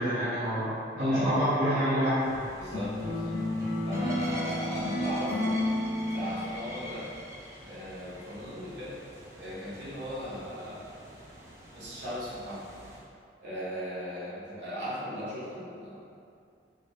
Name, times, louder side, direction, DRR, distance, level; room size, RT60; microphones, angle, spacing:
voice 1, 0.0-2.4, equal, 45° right, -12 dB, 0.7 m, -27 dB
voice 2, 1.0-1.4 2.6-3.4 3.8-5.5 6.1-7.1 7.7-9.0 9.4-10.9 11.7-12.7 13.4-16.0, equal, 70° right, -9 dB, 0.9 m, -37 dB
sound 1, 2.2-13.0, equal, 15° right, 0.3 m, -46 dB
sound 2, 2.7-6.9, left 1 dB, 70° left, 1.1 m, -31 dB
3.0 x 2.5 x 2.6 m, 2.3 s
head